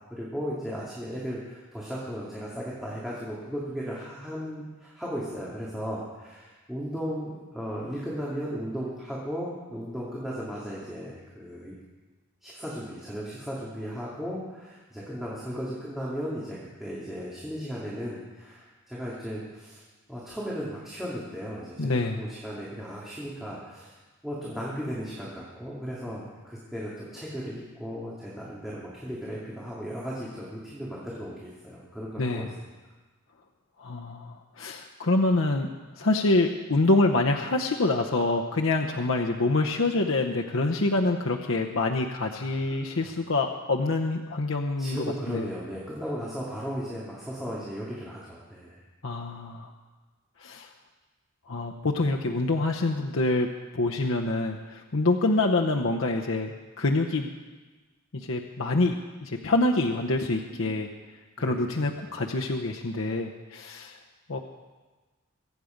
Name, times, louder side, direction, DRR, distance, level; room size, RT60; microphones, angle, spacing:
voice 1, 0.1-11.7 12.4-19.8 20.1-24.0 24.2-32.5 42.2-43.0 44.8-48.8 61.4-62.1, equal, ahead, -7 dB, 2.5 m, -36 dB
voice 2, 21.8-22.2 32.2-32.5 33.8-35.7 36.0-45.5 49.0-49.7 50.4-50.7 51.5-53.5 53.7-56.5 56.8-57.3 58.1-58.9 59.2-60.9 61.4-64.0 64.3-64.4, left 2 dB, 65° left, 1 dB, 0.8 m, -26 dB
23.0 x 8.5 x 5.2 m, 1.3 s
head